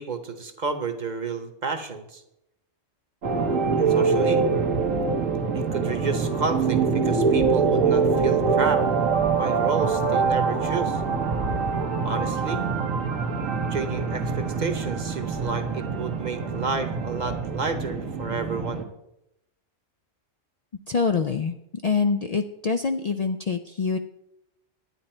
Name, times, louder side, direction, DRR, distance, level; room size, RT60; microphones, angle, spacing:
voice 1, 0.0-2.2 3.8-4.4 5.5-8.9 9.4-11.0 12.0-12.6 13.7-18.9, right 4 dB, 40° right, 8 dB, 1.0 m, -31 dB
sound 1, 3.2-18.8, right 5 dB, 90° right, 1.5 m, -24 dB
voice 2, 20.9-21.5 21.8-24.0, left 5 dB, 90° left, 7 dB, 0.3 m, -25 dB
11.0 x 9.6 x 4.4 m, 0.84 s
omnidirectional pair, 1.3 m